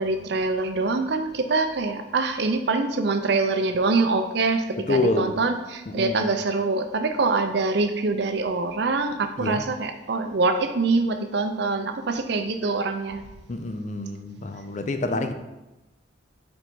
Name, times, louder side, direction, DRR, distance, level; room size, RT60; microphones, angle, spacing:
voice 1, 0.0-13.2, right 3 dB, 60° right, 0.5 m, -24 dB
voice 2, 4.9-5.3 5.9-6.3 9.4-9.6 13.5-15.3, left 2 dB, 40° left, 0.4 m, -27 dB
5.3 x 4.3 x 4.5 m
head